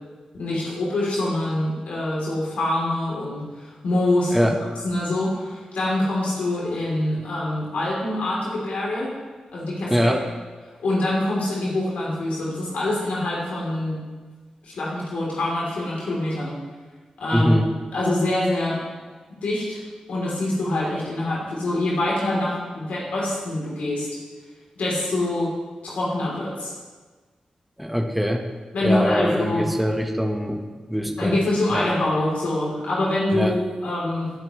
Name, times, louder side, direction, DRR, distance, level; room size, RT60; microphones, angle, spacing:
voice 1, 0.3-4.5 4.8-9.1 9.5-10.1 10.8-14.0 14.6-16.6 17.2-17.7 17.9-18.8 19.4-19.8 20.1-24.1 24.7-25.5 25.8-26.7 28.7-29.7 31.2-34.3, left 1 dB, 85° left, -5 dB, 3.3 m, -25 dB
voice 2, 9.9-10.2 17.3-17.7 27.8-28.5 28.8-30.6 30.9-31.4 31.7-31.9 33.3-33.6, equal, 5° right, 3 dB, 1.3 m, -22 dB
19.0 x 8.7 x 3.2 m, 1.4 s
cardioid pair, 45°, 2 cm